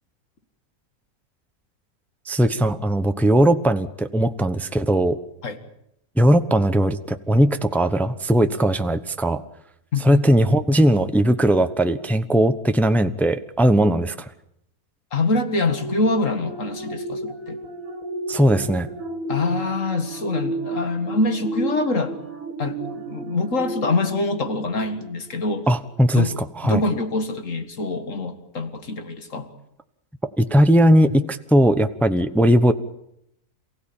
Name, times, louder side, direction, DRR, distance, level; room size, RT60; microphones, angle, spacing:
voice 1, 2.3-5.2 6.2-9.4 10.0-14.3 18.3-18.9 25.7-26.8 30.4-32.7, right 1 dB, ahead, 9 dB, 0.7 m, -19 dB
voice 2, 15.1-17.6 19.3-22.2 22.6-25.7 26.1-26.4 26.6-29.5, left 2 dB, 55° left, 8 dB, 2.3 m, -25 dB
sound 1, 15.6-25.5 25.9-26.1, right 1 dB, 65° right, 2.8 m, -33 dB
28.0 x 16.5 x 8.9 m, 0.79 s
omnidirectional pair, 1.6 m